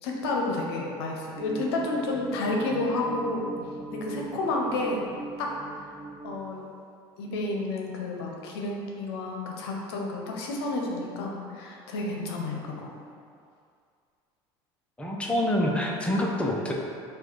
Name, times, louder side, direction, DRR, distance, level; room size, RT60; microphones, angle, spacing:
voice 1, 0.0-3.5 3.9-5.0 5.4-5.5 6.2-6.6 7.2-12.9, left 2 dB, 80° left, -1 dB, 0.7 m, -30 dB
sound 1, 1.4-6.5, right 2 dB, 30° right, 0.6 m, -40 dB
voice 2, 15.0-16.8, left 1 dB, 10° left, -2 dB, 0.7 m, -26 dB
4.6 x 2.5 x 4.5 m, 2.3 s
hypercardioid pair, 85°, 13 cm